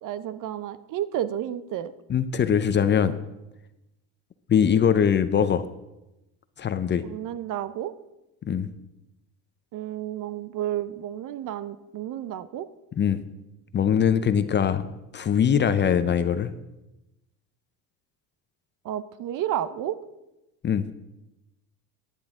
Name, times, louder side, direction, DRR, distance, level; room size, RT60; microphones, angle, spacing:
voice 1, 0.0-1.9 7.0-7.9 9.7-12.7 18.8-20.0, right 11 dB, 50° right, 14 dB, 0.7 m, -31 dB
voice 2, 2.1-3.2 4.5-5.7 6.6-7.0 8.5-8.7 13.0-13.2 13.7-14.9 15.1-16.5 20.6-20.9, left 8 dB, 25° left, 12 dB, 0.6 m, -22 dB
15.0 x 10.0 x 3.7 m, 0.95 s
supercardioid pair, 110°, 41 cm